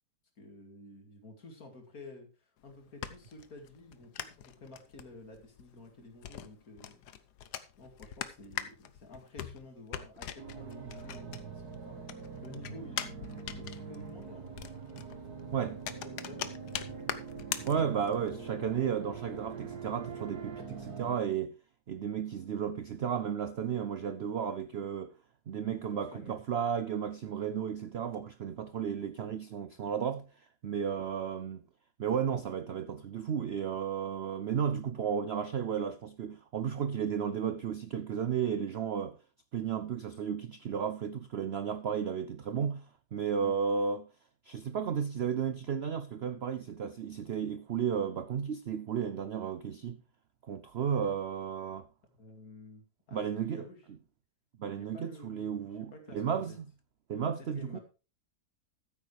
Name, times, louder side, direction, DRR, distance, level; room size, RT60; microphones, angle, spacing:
voice 1, 0.4-7.0 7.8-14.5 15.9-16.6 25.6-26.4 43.4-43.6 52.2-53.8 54.7-56.6 57.4-57.8, left 2 dB, 55° left, 2.8 m, -51 dB
sound 1, 2.6-11.8 12.0-18.3, left 10 dB, 70° left, 1.4 m, -42 dB
sound 2, 10.4-21.2, right 5 dB, 60° right, 2.1 m, -44 dB
voice 2, 17.6-21.5 21.9-25.1 25.5-30.3 30.6-31.6 32.0-39.2 39.5-42.9 43.1-44.1 44.4-50.0 50.5-51.9 53.1-53.7 54.6-56.6 57.1-57.8, right 7 dB, 80° right, 0.5 m, -33 dB
14.0 x 8.2 x 3.3 m
omnidirectional pair, 1.9 m